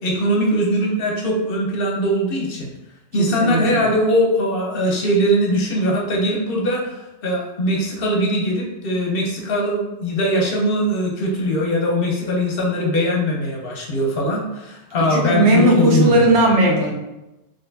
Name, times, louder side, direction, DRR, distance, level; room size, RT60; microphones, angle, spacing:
voice 1, 0.0-2.7 3.1-16.2, equal, 55° left, -1 dB, 1.0 m, -21 dB
voice 2, 3.2-3.8 15.0-17.0, right 1 dB, 75° right, -1 dB, 1.1 m, -17 dB
4.1 x 3.2 x 2.7 m, 0.97 s
omnidirectional pair, 1.2 m